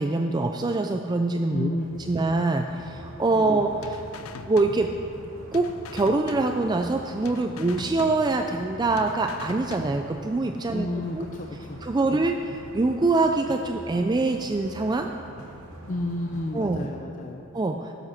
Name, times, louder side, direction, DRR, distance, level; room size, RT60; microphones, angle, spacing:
voice 1, 0.0-1.7 2.0-4.0 4.5-4.9 5.5-5.7 5.9-10.9 11.1-11.3 11.8-15.1 16.5-16.9 17.5-17.9, right 3 dB, 20° right, 4 dB, 0.4 m, -24 dB
voice 2, 1.5-1.9 3.5-3.6 10.7-11.8 12.1-12.2 15.9-17.4, left 2 dB, 40° left, 3 dB, 0.5 m, -31 dB
sound 1, 1.8-16.9, equal, 65° left, 2.4 m, -46 dB
sound 2, 2.6-16.5, right 1 dB, 85° right, 1.4 m, -48 dB
sound 3, 3.8-5.3 5.5-7.0 7.2-8.7 9.0-10.3, left 5 dB, 90° left, 0.5 m, -42 dB
12.5 x 8.1 x 5.7 m, 2.7 s
head